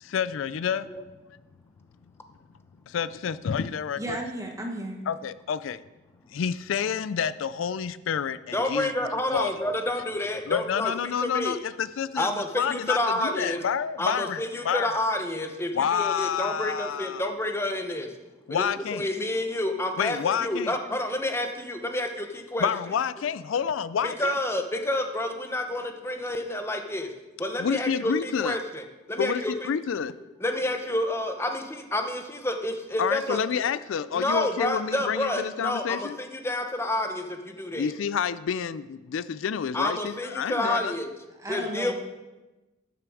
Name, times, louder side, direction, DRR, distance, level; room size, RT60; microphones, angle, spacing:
voice 1, 0.0-0.9 2.9-4.2 5.1-5.8 6.3-8.9 9.3-9.5 10.5-15.0 15.7-17.3 18.5-19.1 20.0-20.7 22.6-24.4 27.6-28.6 29.2-30.1 33.0-36.2 37.7-40.9, left 7 dB, 80° left, 15 dB, 0.4 m, -29 dB
voice 2, 4.0-5.0 40.6-40.7 41.4-41.9, right 1 dB, 15° right, 2 dB, 1.2 m, -34 dB
voice 3, 8.5-10.9 11.2-11.6 12.2-13.6 14.0-18.1 18.9-22.7 24.0-27.1 27.4-29.7 30.4-33.4 34.1-37.9 39.7-41.1 41.5-41.9, left 1 dB, 15° left, 5 dB, 0.9 m, -29 dB
13.0 x 6.6 x 4.9 m, 1.1 s
head